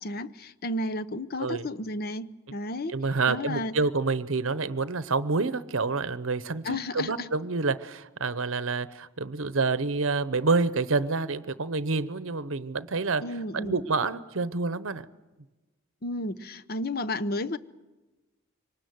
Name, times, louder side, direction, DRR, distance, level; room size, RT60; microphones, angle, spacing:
voice 1, 0.0-2.9 3.3-3.7 6.6-7.3 13.2-13.8 16.0-17.6, left 1 dB, 45° left, 0.7 m, -32 dB
voice 2, 2.9-13.2 13.5-15.0, right 4 dB, 65° right, 0.9 m, -28 dB
24.0 x 20.0 x 9.5 m
head